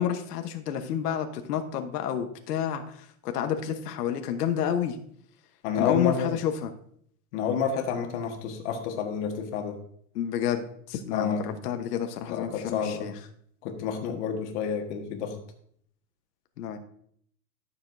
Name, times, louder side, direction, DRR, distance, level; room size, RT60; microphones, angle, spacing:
voice 1, 0.0-5.0 5.7-6.7 10.1-13.1 16.6-16.8, left 9 dB, 85° left, 6 dB, 1.1 m, -29 dB
voice 2, 5.6-6.3 7.3-9.8 11.1-11.6 12.3-13.1 13.6-15.4, left 6 dB, 50° left, 3 dB, 1.6 m, -29 dB
12.0 x 6.9 x 2.6 m, 0.65 s
supercardioid pair, 160°, 46 cm